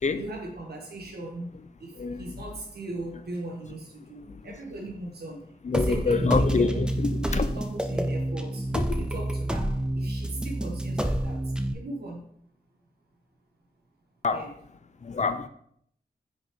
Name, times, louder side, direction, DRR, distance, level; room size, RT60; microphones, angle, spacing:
voice 1, 0.1-5.4 5.7-6.8 7.1-8.7 9.0-12.2 14.3-14.5, right 2 dB, 85° right, 1.5 m, -39 dB
voice 2, 5.6-7.5 8.7-9.1 14.2-14.5 15.0-15.5, left 4 dB, 45° left, 0.5 m, -27 dB
sound 1, 5.7-11.7, right 1 dB, 5° right, 0.5 m, -28 dB
5.8 x 5.2 x 3.7 m
cardioid pair, 65°, 16 cm